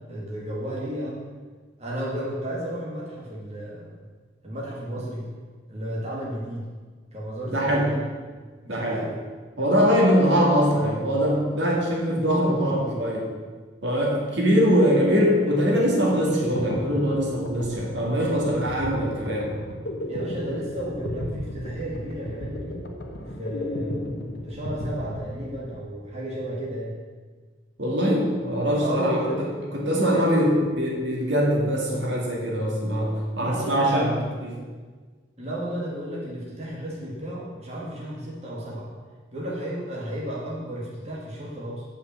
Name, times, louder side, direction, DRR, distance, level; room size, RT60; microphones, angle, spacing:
voice 1, 0.1-1.2 1.8-3.9 4.4-5.3 5.7-6.7 7.1-8.0 8.6-9.1 9.7-10.3 20.1-22.8 23.2-24.2 24.4-26.9 28.8-29.5 30.1-30.5 33.4-34.1 35.4-38.9 39.3-41.9, right 1 dB, 35° right, -5 dB, 2.0 m, -33 dB
voice 2, 7.5-7.9 8.7-9.0 9.6-13.3 13.8-19.5 27.8-29.2 29.7-34.6, equal, 70° right, -2 dB, 2.2 m, -22 dB
sound 1, 15.4-25.9, left 1 dB, 60° left, 1.1 m, -34 dB
7.9 x 5.8 x 7.5 m, 1.4 s
head